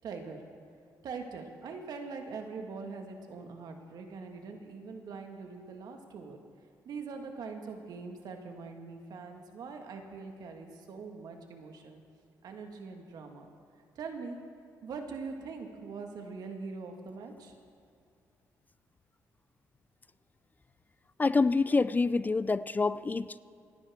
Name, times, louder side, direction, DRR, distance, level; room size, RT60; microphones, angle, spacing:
voice 1, 0.0-0.4 1.0-6.4 6.9-12.0 12.4-13.5 14.0-14.4 14.8-17.5, right 4 dB, 65° right, 4 dB, 1.8 m, -42 dB
voice 2, 21.2-23.4, left 3 dB, 25° left, 16 dB, 0.4 m, -27 dB
28.0 x 10.0 x 3.7 m, 2.4 s
supercardioid pair, 75°, 7 cm